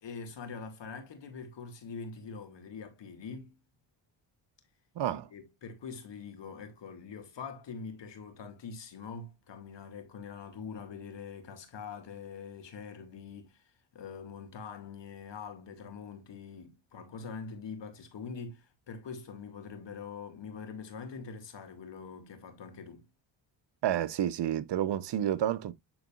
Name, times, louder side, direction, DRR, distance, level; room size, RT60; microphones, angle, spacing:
voice 1, 0.0-3.6 5.1-23.1, left 5 dB, 60° left, 2.4 m, -44 dB
voice 2, 5.0-5.3 23.8-25.7, right 11 dB, 60° right, 0.9 m, -30 dB
11.0 x 4.0 x 2.4 m
supercardioid pair, 55°, 47 cm